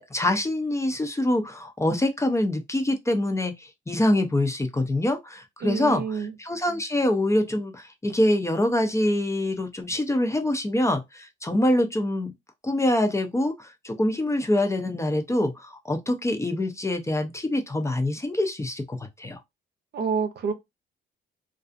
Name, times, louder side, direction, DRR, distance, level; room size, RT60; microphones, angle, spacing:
voice 1, 0.0-12.3 12.6-19.4, left 1 dB, 15° left, 0.5 m, -25 dB
voice 2, 5.6-6.3 19.9-20.5, right 6 dB, 55° right, 0.6 m, -27 dB
2.4 x 2.3 x 2.5 m
cardioid pair, 90°, 20 cm